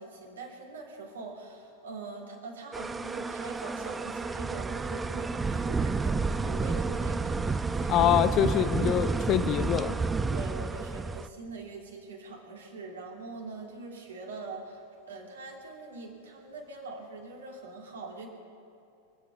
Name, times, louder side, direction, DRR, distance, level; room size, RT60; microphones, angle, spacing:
voice 1, 0.0-8.1 8.6-8.8 9.1-9.2 10.3-18.3, right 3 dB, 65° right, 0 dB, 2.7 m, -43 dB
sound 1, 2.7-11.3, right 4 dB, 15° right, 0.5 m, -30 dB
voice 2, 7.9-9.9, left 11 dB, 35° left, 11 dB, 0.6 m, -25 dB
24.5 x 8.4 x 7.0 m, 2.5 s
figure-of-eight pair, 90°, 0 cm